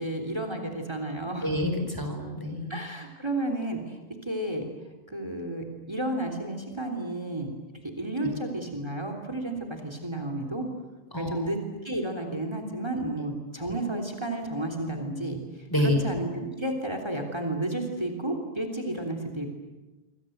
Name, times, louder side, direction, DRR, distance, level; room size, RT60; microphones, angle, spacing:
voice 1, 0.0-1.5 2.7-4.7 5.1-7.5 8.0-10.6 11.1-11.6 11.8-15.4 15.8-19.5, right 1 dB, 25° right, 5 dB, 3.4 m, -32 dB
voice 2, 1.4-2.8 11.1-11.5 15.7-16.1, left 1 dB, 20° left, 5 dB, 4.5 m, -28 dB
27.0 x 26.0 x 8.0 m, 1.1 s
omnidirectional pair, 1.2 m